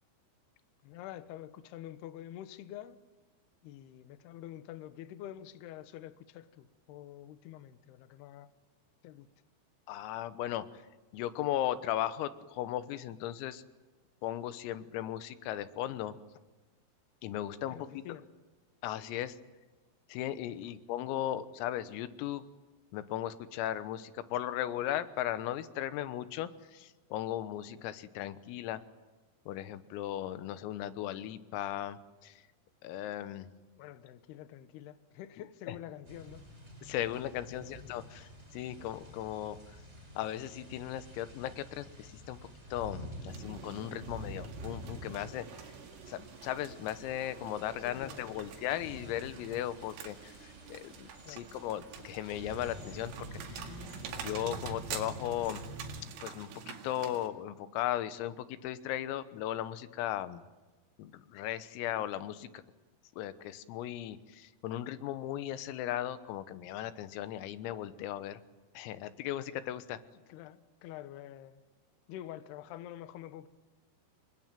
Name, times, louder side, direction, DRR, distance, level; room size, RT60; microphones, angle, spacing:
voice 1, 0.8-3.0 3.6-8.5 9.0-9.3 17.7-18.3 20.6-20.7 33.8-36.4 37.5-37.7 47.8-48.4 51.2-51.5 70.3-71.6 72.1-73.5, left 12 dB, 70° left, 12 dB, 2.6 m, -47 dB
voice 2, 9.9-10.8 11.1-13.6 14.2-16.1 17.2-18.0 18.8-19.4 20.1-22.4 22.9-28.8 29.5-32.4 32.8-33.5 35.7-35.8 36.8-39.6 40.2-42.4 42.7-45.5 46.1-50.4 50.7-55.6 56.2-60.4 61.0-62.5 63.2-68.4 68.8-70.0, left 12 dB, 90° left, 12 dB, 3.8 m, -37 dB
Rainy day ambient, 36.1-56.0, equal, 15° right, 5.0 m, -48 dB
sound 1, 43.3-57.3, right 8 dB, 85° right, 4.8 m, -47 dB
27.5 x 21.5 x 9.1 m, 1.2 s
omnidirectional pair, 5.9 m